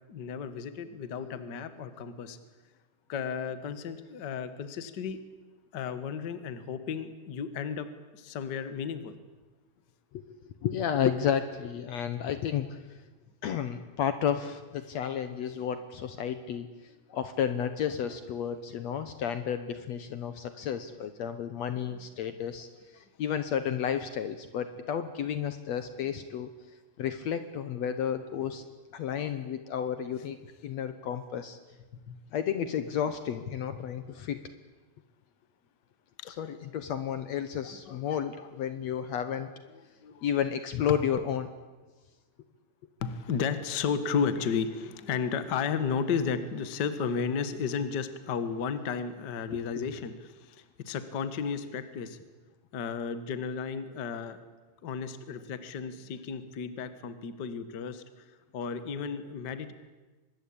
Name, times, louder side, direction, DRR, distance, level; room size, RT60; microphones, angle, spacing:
voice 1, 0.1-2.4 3.1-5.2 5.7-9.1 17.1-17.2 20.9-21.0 21.7-21.8 23.0-23.1 29.2-29.3 32.1-32.2 36.2-36.4 37.6-38.2 40.0-40.3 40.8-41.0 43.0-52.2 52.7-54.4 54.8-58.0 58.5-59.7, left 6 dB, 45° left, 11 dB, 1.6 m, -33 dB
voice 2, 10.1-13.0 13.4-16.7 17.1-22.7 22.9-26.5 27.0-28.7 28.9-30.4 30.6-31.6 32.3-34.4 36.3-39.5 40.2-41.5 49.8-49.9, left 8 dB, 65° left, 10 dB, 2.1 m, -32 dB
25.0 x 21.0 x 8.7 m, 1.2 s
omnidirectional pair, 3.7 m